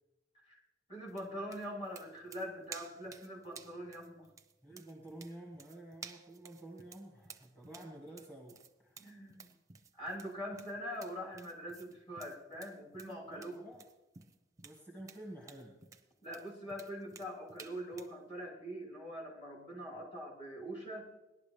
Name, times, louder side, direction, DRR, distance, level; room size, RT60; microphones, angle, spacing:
voice 1, 0.9-4.3 9.0-9.5 10.0-13.7 16.2-21.1, equal, 30° left, -2 dB, 3.2 m, -43 dB
sound 1, 1.1-18.2, right 6 dB, 20° right, 0.7 m, -54 dB
voice 2, 4.6-9.0 13.3-13.8 14.6-15.8, right 1 dB, 10° left, -2 dB, 1.5 m, -50 dB
19.0 x 11.5 x 3.2 m, 1.0 s
head